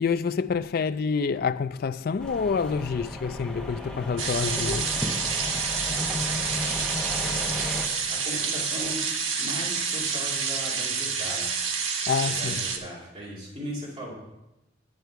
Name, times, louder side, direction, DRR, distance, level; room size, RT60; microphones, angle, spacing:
voice 1, 0.0-5.1 12.1-12.6, left 5 dB, 50° left, 0.3 m, -27 dB
sound 1, 2.2-7.9, left 1 dB, 5° left, 1.1 m, -35 dB
sound 2, 3.6-10.7, equal, 10° right, 0.5 m, -44 dB
sound 3, 4.2-12.8, right 5 dB, 80° right, 1.2 m, -28 dB
voice 2, 8.1-9.0 9.4-11.6 12.2-14.1, equal, 30° right, 2.6 m, -37 dB
9.4 x 8.2 x 4.6 m
head